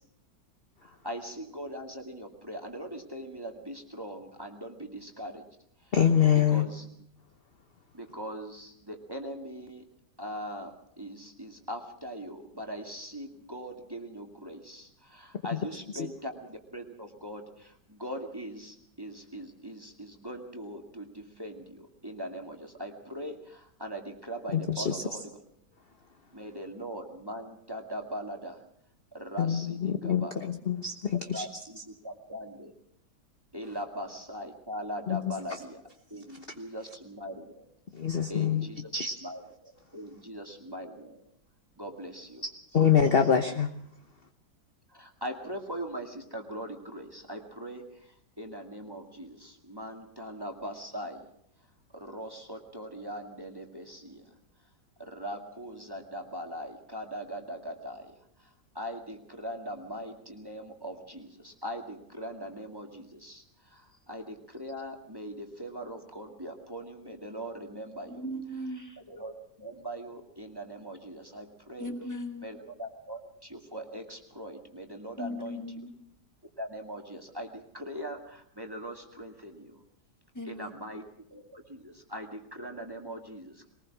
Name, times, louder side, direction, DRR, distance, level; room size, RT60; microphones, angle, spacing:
voice 1, 0.8-5.4 5.9-6.0 6.3-6.9 7.9-9.8 10.2-25.4 26.3-28.6 29.1-30.3 31.3-32.7 33.5-35.8 36.1-37.6 38.3-38.9 39.2-41.2 41.8-42.4 44.9-51.2 51.9-54.3 55.0-58.1 58.4-68.2 69.1-69.3 69.6-71.9 72.4-75.6 76.6-79.8 80.5-83.7, equal, 15° right, 3 dB, 2.2 m, -41 dB
voice 2, 5.9-6.7 15.9-16.1 24.5-25.0 29.4-31.5 35.1-35.2 37.9-39.1 42.7-43.7, left 8 dB, 40° left, 6 dB, 1.2 m, -25 dB
voice 3, 68.1-69.0 71.8-72.6 75.2-75.9 80.3-80.8, equal, 10° left, 4 dB, 2.2 m, -38 dB
22.0 x 20.0 x 6.2 m, 0.71 s
omnidirectional pair, 1.8 m